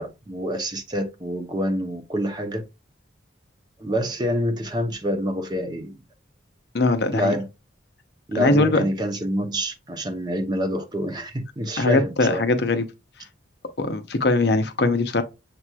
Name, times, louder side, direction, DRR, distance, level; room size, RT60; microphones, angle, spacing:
voice 1, 0.0-2.6 3.8-6.0 7.1-7.5 8.3-12.4, equal, 20° right, 0.6 m, -27 dB
voice 2, 6.7-7.3 8.3-8.8 11.8-12.9 13.8-15.2, left 2 dB, 55° left, 0.6 m, -21 dB
6.6 x 2.9 x 2.3 m
head